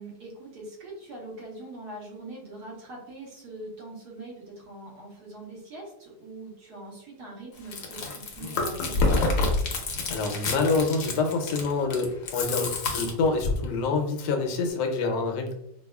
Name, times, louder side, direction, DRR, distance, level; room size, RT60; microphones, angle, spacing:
voice 1, 0.0-9.1, right 2 dB, 65° right, -2 dB, 1.4 m, -42 dB
Chewing mastication, 7.6-13.6, left 3 dB, 65° left, 0.9 m, -28 dB
voice 2, 10.1-15.6, left 4 dB, 80° left, 3 dB, 1.2 m, -26 dB
4.7 x 2.3 x 2.2 m, 0.77 s
omnidirectional pair, 1.9 m